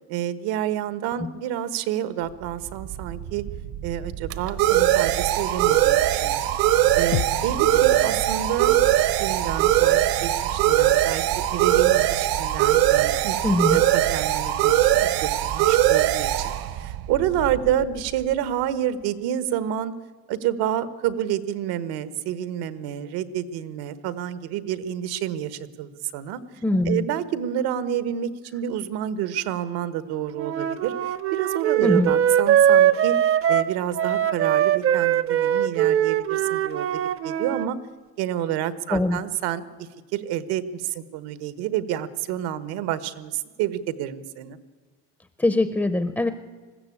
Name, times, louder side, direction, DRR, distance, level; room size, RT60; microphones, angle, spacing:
voice 1, 0.0-3.4 3.8-6.5 6.9-8.7 9.2-13.4 13.7-19.9 20.3-37.8 38.2-39.7 40.1-44.6, right 10 dB, 85° right, 14 dB, 1.4 m, -29 dB
sound 1, 2.7-18.1, right 13 dB, 65° right, 1.1 m, -21 dB
sound 2, 7.1-11.5, left 16 dB, 60° left, 0.5 m, -36 dB
voice 2, 13.4-13.8 26.6-27.1 31.8-32.1 38.9-39.2 45.4-46.3, left 2 dB, 5° left, 10 dB, 0.5 m, -22 dB
Wind instrument woodwind instrument, 30.4-37.7, right 10 dB, 35° right, 0.6 m, -21 dB
20.5 x 15.0 x 8.5 m, 1.4 s
cardioid pair, 170°, 38 cm